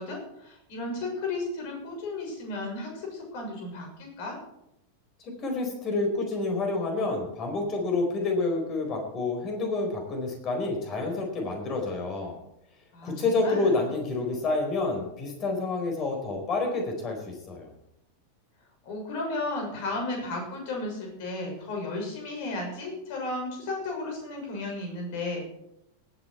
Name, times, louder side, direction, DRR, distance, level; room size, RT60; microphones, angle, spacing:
voice 1, 0.0-4.4 12.9-13.7 18.8-25.4, left 2 dB, 50° left, 0 dB, 6.3 m, -34 dB
voice 2, 5.2-12.3 13.0-17.7, left 3 dB, 30° left, 3 dB, 4.5 m, -28 dB
18.5 x 9.1 x 4.6 m, 0.81 s
figure-of-eight pair, 90°, 0 cm